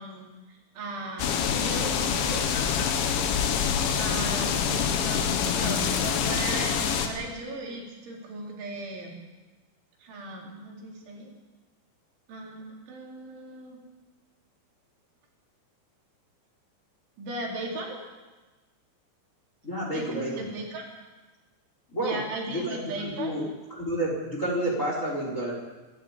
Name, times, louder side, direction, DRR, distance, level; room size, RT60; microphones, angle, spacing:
voice 1, 0.0-2.5 3.9-9.2 10.0-11.3 12.3-13.8 17.2-18.0 19.9-20.8 22.0-23.3, right 2 dB, 70° right, -1 dB, 6.4 m, -37 dB
sound 1, 1.2-7.1, left 7 dB, 75° left, 3.9 m, -26 dB
voice 2, 19.6-20.5 21.9-22.2 22.5-23.4 23.8-25.5, right 1 dB, 15° left, -1 dB, 4.2 m, -30 dB
26.5 x 13.0 x 8.9 m, 1.2 s
omnidirectional pair, 5.7 m